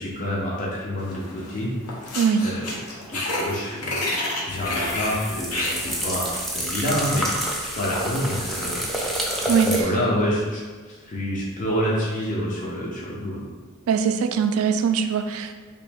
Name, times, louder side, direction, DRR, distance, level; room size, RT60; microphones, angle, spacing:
voice 1, 0.0-1.7 2.4-2.6 3.1-4.0 4.5-8.8 9.4-13.4, equal, 35° left, -6 dB, 0.7 m, -28 dB
sound 1, 1.1-1.6 1.8-6.5, left 1 dB, 85° left, 0.7 m, -29 dB
sound 2, 4.5-9.8, right 1 dB, ahead, 0.4 m, -28 dB
voice 2, 9.5-9.9 13.9-15.6, right 6 dB, 70° right, 8 dB, 0.3 m, -21 dB
3.1 x 3.0 x 3.4 m, 1.5 s
head